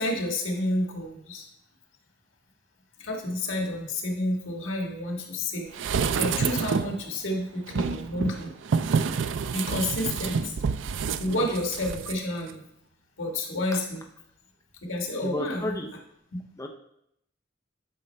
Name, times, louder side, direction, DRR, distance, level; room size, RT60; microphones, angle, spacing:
voice 1, 0.0-1.5 3.0-8.5 9.5-10.5 11.2-12.6 13.2-14.0 14.8-15.8 16.3-16.4, left 1 dB, 80° left, 1 dB, 1.7 m, -30 dB
sound 1, 5.7-7.0 7.7-12.2 12.5-12.6, right 6 dB, 70° right, 0.4 m, -28 dB
voice 2, 15.2-15.9 16.6-16.7, left 1 dB, 15° left, 3 dB, 0.6 m, -32 dB
11.0 x 5.4 x 3.3 m, 0.76 s
head